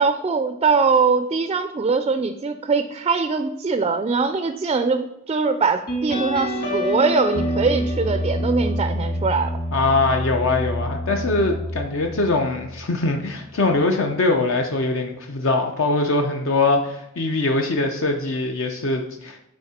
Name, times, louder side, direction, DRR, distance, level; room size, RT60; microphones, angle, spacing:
voice 1, 0.0-9.6, right 4 dB, 25° right, 9 dB, 0.3 m, -22 dB
sound 1, 5.9-13.0, equal, 45° left, 2.0 m, -27 dB
voice 2, 9.7-19.4, left 2 dB, 65° left, 3 dB, 0.6 m, -22 dB
9.7 x 3.6 x 4.2 m, 0.87 s
head